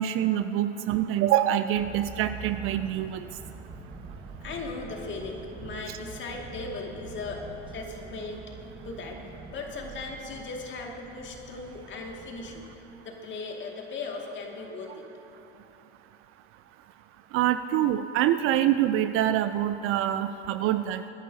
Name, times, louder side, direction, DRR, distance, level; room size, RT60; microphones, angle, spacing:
voice 1, 0.0-3.3 17.3-21.0, right 12 dB, 40° right, 11 dB, 0.5 m, -25 dB
sound 1, 1.7-12.7, right 4 dB, 15° right, 1.5 m, -44 dB
voice 2, 4.2-7.5 7.7-8.4 8.8-9.2 9.5-15.0, left 3 dB, 35° left, 0 dB, 2.2 m, -38 dB
24.0 x 10.5 x 2.8 m, 2.9 s
hypercardioid pair, 85°, 33 cm